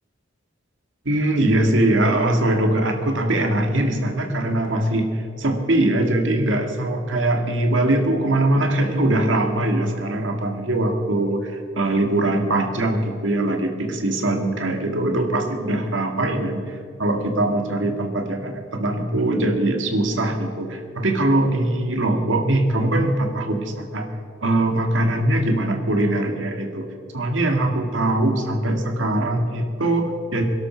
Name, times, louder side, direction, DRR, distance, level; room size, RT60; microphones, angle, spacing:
voice 1, 1.1-24.1 24.4-26.9 27.1-30.4, right 1 dB, 80° right, 4 dB, 2.1 m, -22 dB
22.5 x 12.0 x 4.6 m, 2.3 s
head